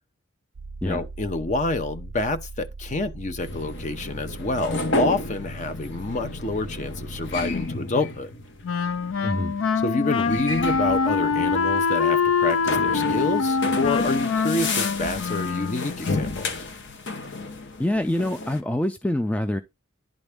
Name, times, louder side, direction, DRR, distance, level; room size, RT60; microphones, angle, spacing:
sound 1, 0.5-7.7, right 3 dB, 80° right, 0.4 m, -40 dB
voice 1, 0.8-8.3 9.8-16.5, left 2 dB, 35° left, 0.6 m, -28 dB
sound 2, 3.4-18.6, left 2 dB, 55° left, 1.0 m, -32 dB
Wind instrument woodwind instrument, 8.6-16.0, left 5 dB, 80° left, 0.4 m, -24 dB
voice 2, 9.2-9.5 17.8-19.6, left 1 dB, 5° left, 0.3 m, -25 dB
11.0 x 3.9 x 3.4 m
head